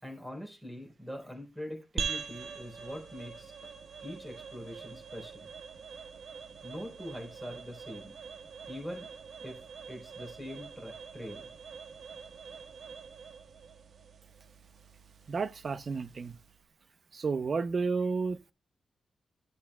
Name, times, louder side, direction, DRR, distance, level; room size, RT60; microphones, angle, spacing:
voice 1, 0.0-3.5 4.0-5.5 6.6-8.1 8.7-9.1 9.4-9.6 9.9-11.5, left 1 dB, ahead, 3.8 m, -43 dB
sound 1, 2.0-16.6, right 5 dB, 75° right, 1.1 m, -44 dB
voice 2, 15.3-16.3 17.1-18.5, right 4 dB, 50° right, 0.6 m, -31 dB
14.0 x 7.2 x 2.2 m
wide cardioid pair, 100°, 0 cm